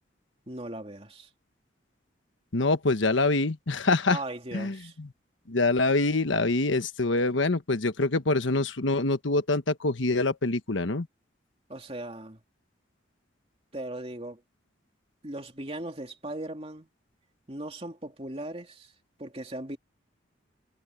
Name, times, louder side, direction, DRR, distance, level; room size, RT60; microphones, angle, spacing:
voice 1, 0.5-1.3 4.1-4.9 11.7-12.4 13.7-14.4 15.2-16.9 17.5-18.9 19.2-19.8, right 1 dB, 30° right, 2.8 m, -38 dB
voice 2, 2.5-4.2 4.5-5.1 5.5-11.1, left 2 dB, 75° left, 1.2 m, -25 dB
head